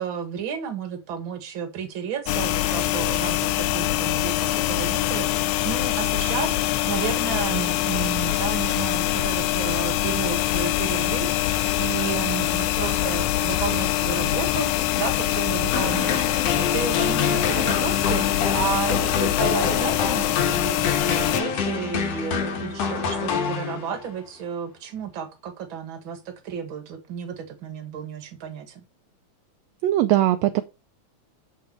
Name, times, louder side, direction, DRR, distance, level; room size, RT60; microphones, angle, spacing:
voice 1, 0.0-28.8, right 7 dB, 50° right, 2.0 m, -32 dB
sound 1, 2.3-21.4, left 14 dB, 80° left, 1.9 m, -24 dB
sound 2, 11.3-20.1, left 7 dB, 35° left, 1.6 m, -45 dB
sound 3, 15.7-24.1, left 6 dB, 60° left, 2.3 m, -27 dB
voice 2, 29.8-30.6, right 13 dB, 75° right, 1.6 m, -20 dB
7.8 x 5.7 x 4.5 m
omnidirectional pair, 3.5 m